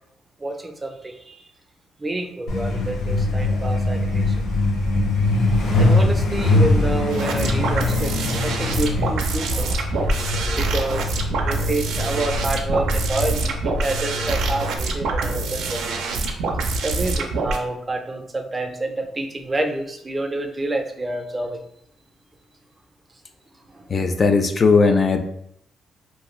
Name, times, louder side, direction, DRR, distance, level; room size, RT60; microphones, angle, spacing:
voice 1, 0.4-1.4 2.0-4.4 5.8-9.9 10.6-11.2 11.4-15.8 16.3-16.4 16.8-21.6 23.7-23.9, right 2 dB, 25° right, 5 dB, 0.4 m, -28 dB
Truck, 2.5-14.8, left 2 dB, 75° left, 0.8 m, -23 dB
sound 1, 7.1-17.6, right 3 dB, 80° right, 0.4 m, -25 dB
voice 2, 23.9-25.2, left 4 dB, 40° left, 6 dB, 0.3 m, -17 dB
2.5 x 2.3 x 3.0 m, 0.72 s
cardioid pair, 90°, 0 cm